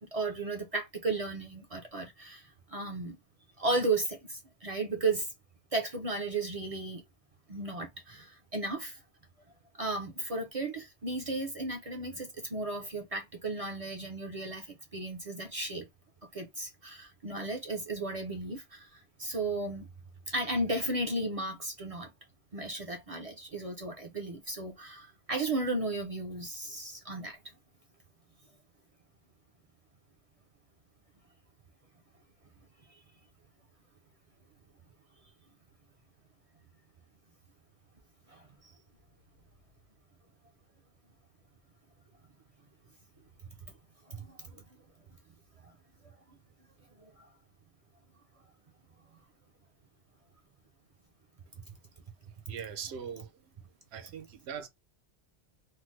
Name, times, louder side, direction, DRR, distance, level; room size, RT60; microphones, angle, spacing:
voice 1, 0.1-3.2 3.6-5.3 5.7-7.0 7.5-9.0 9.8-15.9 16.3-19.9 20.3-22.1 22.5-27.4 38.3-38.7 44.2-44.6 47.0-47.1, right 2 dB, 45° right, 0.5 m, -34 dB
voice 2, 52.3-53.5 53.9-54.7, right 7 dB, 80° right, 0.8 m, -41 dB
3.2 x 2.0 x 3.1 m
omnidirectional pair, 1.1 m